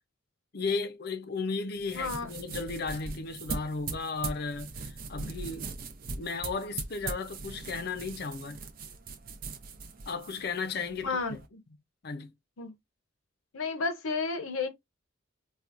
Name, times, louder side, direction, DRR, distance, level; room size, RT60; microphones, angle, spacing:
voice 1, 0.5-5.7 6.2-8.6 10.1-11.4 12.0-12.3, left 4 dB, 50° left, 0.5 m, -35 dB
sound 1, 1.8-11.5, right 4 dB, 45° right, 0.6 m, -40 dB
voice 2, 1.9-2.3 11.0-11.6 12.6-12.7 13.5-14.7, left 4 dB, 85° left, 0.7 m, -32 dB
4.2 x 2.2 x 2.5 m
head